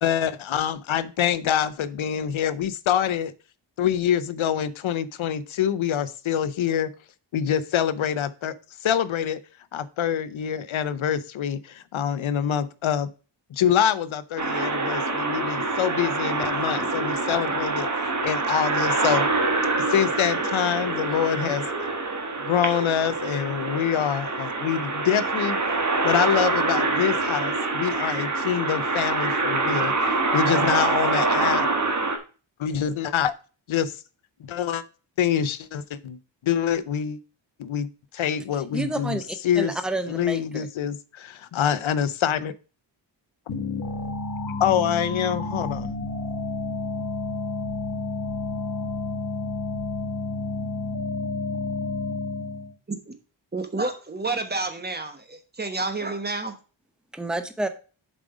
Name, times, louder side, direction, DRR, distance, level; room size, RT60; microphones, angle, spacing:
voice 1, 0.0-3.3 3.8-6.9 7.3-8.5 8.8-9.4 9.7-13.1 13.5-17.9 18.2-19.3 19.9-21.6 22.4-25.6 26.0-29.9 30.3-31.7 32.6-33.3 33.7-34.0 34.4-34.8 35.2-37.2 37.6-37.9 38.1-39.2 39.4-39.7 40.1-42.5 44.6-45.9, left 9 dB, 80° left, 0.7 m, -25 dB
sound 1, 14.4-32.2, right 3 dB, 35° right, 1.4 m, -25 dB
voice 2, 38.7-40.7 57.1-57.7, right 1 dB, ahead, 0.7 m, -29 dB
sound 2, 43.5-52.7, left 3 dB, 50° left, 1.7 m, -30 dB
voice 3, 53.5-56.6, right 3 dB, 20° right, 1.2 m, -30 dB
7.5 x 5.1 x 4.9 m
wide cardioid pair, 145°, 47 cm